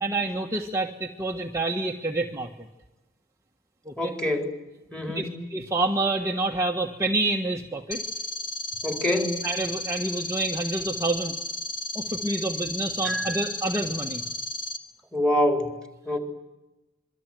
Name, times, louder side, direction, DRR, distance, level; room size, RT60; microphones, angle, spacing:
voice 1, 0.0-2.7 3.8-4.1 5.1-8.0 9.4-11.3 11.9-14.2, right 2 dB, 15° right, 0 dB, 1.5 m, -28 dB
voice 2, 4.0-4.6 4.9-5.3 8.8-9.4 13.0-13.4 15.1-15.8 16.0-16.2, left 1 dB, 5° left, 4 dB, 4.1 m, -25 dB
sound 1, 7.9-14.8, left 2 dB, 25° left, 2.8 m, -33 dB
26.5 x 24.0 x 9.2 m, 1.0 s
head